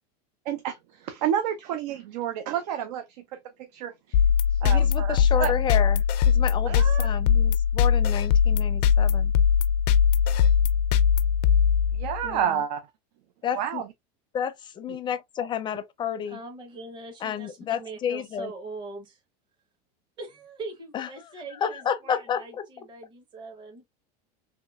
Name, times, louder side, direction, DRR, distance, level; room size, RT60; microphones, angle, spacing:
voice 1, 0.5-4.2 4.5-5.5 6.6-7.1 11.9-12.8 13.5-13.9, right 9 dB, 75° right, 0.6 m, -30 dB
sound 1, 4.1-12.3, left 7 dB, 75° left, 0.4 m, -21 dB
voice 2, 4.6-9.3 12.2-12.6 13.4-13.8 14.3-16.4 17.2-18.5 20.9-22.6, left 8 dB, 20° left, 0.5 m, -31 dB
voice 3, 16.2-19.2 20.2-23.9, right 3 dB, 20° right, 0.9 m, -41 dB
3.1 x 2.9 x 2.3 m
supercardioid pair, 135°, 21 cm